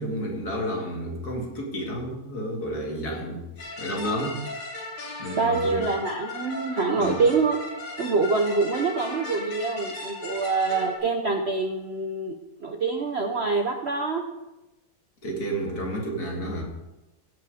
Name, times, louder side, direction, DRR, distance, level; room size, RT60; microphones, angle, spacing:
voice 1, 0.0-4.7 5.2-5.9 7.0-7.2 15.2-16.6, equal, 60° left, 0 dB, 2.6 m, -31 dB
sound 1, 3.6-11.0, left 2 dB, 80° left, 2.8 m, -37 dB
voice 2, 5.4-7.6 8.0-14.2, right 4 dB, 50° right, 4 dB, 0.8 m, -25 dB
16.0 x 6.2 x 5.0 m, 1.0 s
omnidirectional pair, 1.9 m